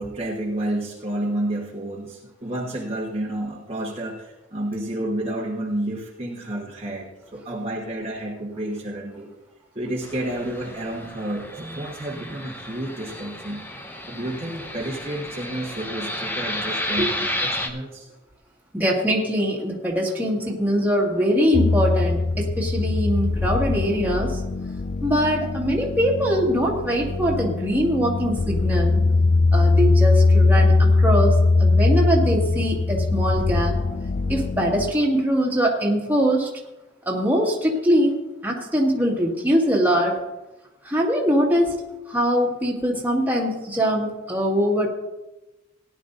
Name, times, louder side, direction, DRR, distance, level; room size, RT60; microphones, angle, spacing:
voice 1, 0.0-9.3 9.7-13.6 14.1-18.1, right 1 dB, 30° right, -4 dB, 1.4 m, -30 dB
Fixed-wing aircraft airplane, 10.0-17.7, left 1 dB, 10° left, 1.0 m, -32 dB
voice 2, 18.7-24.4 25.0-29.0 29.5-33.8 34.3-36.5 37.1-38.2 38.4-40.2 40.8-41.7 42.1-44.9, equal, 10° right, -3 dB, 2.0 m, -22 dB
sound 1, 21.5-34.9, left 3 dB, 35° left, 0.4 m, -21 dB
18.0 x 10.5 x 2.6 m, 1.0 s
head